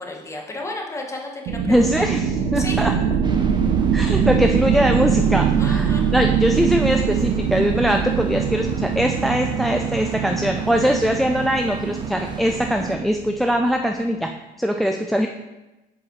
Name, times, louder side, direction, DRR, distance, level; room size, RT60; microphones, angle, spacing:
voice 1, 0.0-2.0 2.5-2.8 5.6-6.0, left 2 dB, 15° left, 0 dB, 1.0 m, -33 dB
sound 1, 1.5-13.7, right 7 dB, 75° right, 0.6 m, -23 dB
voice 2, 1.7-2.9 3.9-14.3 14.6-15.3, equal, ahead, 4 dB, 0.3 m, -21 dB
sound 2, 3.2-13.0, right 3 dB, 25° right, 0.7 m, -37 dB
7.0 x 4.7 x 3.0 m, 1.0 s
cardioid pair, 110°, 17 cm